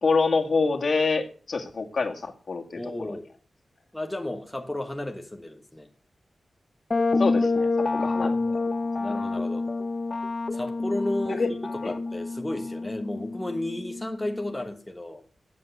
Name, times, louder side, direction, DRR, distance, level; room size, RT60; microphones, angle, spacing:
voice 1, 0.0-3.1 7.2-7.7 8.0-8.4 11.4-11.5 11.8-11.9, left 4 dB, 50° left, 2.0 m, -26 dB
voice 2, 2.8-3.3 3.9-5.9 8.0-8.5 9.0-9.7 10.5-11.6 11.8-15.2, left 1 dB, 10° left, 1.2 m, -33 dB
sound 1, 6.9-14.5, left 3 dB, 35° left, 0.7 m, -28 dB
13.5 x 8.1 x 8.0 m
wide cardioid pair, 140°, 0 cm